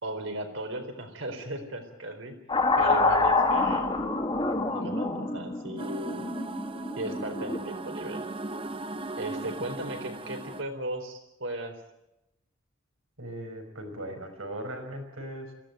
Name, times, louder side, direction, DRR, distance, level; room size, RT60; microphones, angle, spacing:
voice 1, 0.0-2.4 2.8-4.0 4.7-6.2 7.0-8.3 9.2-11.8, right 1 dB, 65° right, 5 dB, 4.3 m, -36 dB
sound 1, 2.5-7.6, left 3 dB, 25° left, 2.3 m, -26 dB
sound 2, 5.8-10.6, right 2 dB, 25° right, 0.7 m, -38 dB
voice 2, 13.2-15.5, right 1 dB, 85° right, 4 dB, 5.7 m, -38 dB
22.0 x 15.5 x 9.3 m, 0.91 s
head